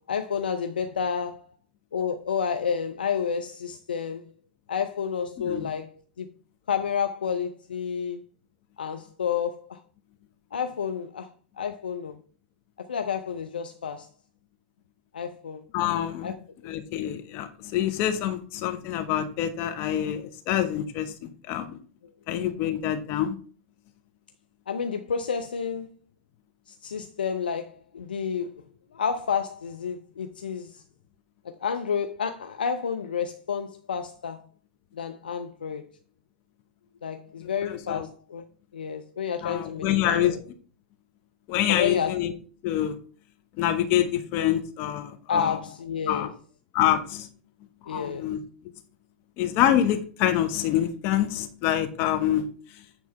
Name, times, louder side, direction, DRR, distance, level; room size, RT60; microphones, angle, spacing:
voice 1, 0.0-1.4 1.9-4.2 4.7-6.3 6.7-8.2 8.8-9.8 10.5-11.3 11.6-12.2 12.8-14.1 15.1-15.6 16.2-16.4 24.7-25.9 26.7-28.5 28.9-30.8 31.4-34.4 34.9-35.9 37.0-38.4 38.7-40.4 41.7-42.2 45.3-46.3 47.9-48.3, left 7 dB, 80° left, 0.6 m, -30 dB
voice 2, 5.4-5.7 15.7-16.3 16.6-21.8 22.3-23.3 37.4-38.1 39.4-40.4 41.5-42.3 42.6-42.9 43.6-45.6 46.1-46.3 46.7-47.3 47.9-48.4 49.4-52.5, left 11 dB, 45° left, 1.0 m, -26 dB
9.7 x 3.3 x 5.5 m
figure-of-eight pair, 95°, 5 cm